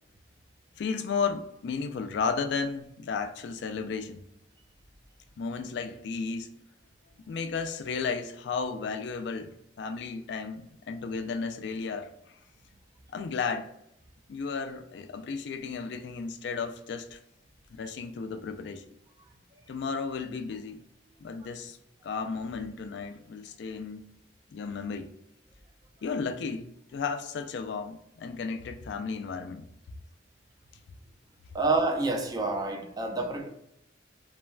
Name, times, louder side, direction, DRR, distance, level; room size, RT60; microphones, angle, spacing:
voice 1, 0.8-4.2 5.4-6.5 7.3-12.4 13.1-13.7 14.3-17.2 17.8-18.8 19.7-20.8 21.2-21.8 22.0-24.2 24.5-25.1 26.0-29.7, left 5 dB, 65° left, 0.3 m, -34 dB
voice 2, 31.5-33.5, right 3 dB, 20° right, 0.3 m, -28 dB
3.1 x 2.1 x 2.4 m
head